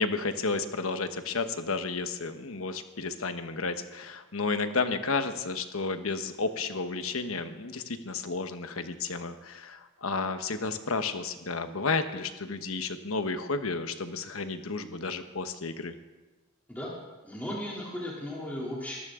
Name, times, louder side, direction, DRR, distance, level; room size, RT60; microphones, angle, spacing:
voice 1, 0.0-16.0, left 4 dB, 75° left, 9 dB, 1.1 m, -32 dB
voice 2, 17.2-19.0, left 1 dB, 10° left, -6 dB, 2.9 m, -36 dB
23.0 x 14.0 x 3.7 m, 1.2 s
head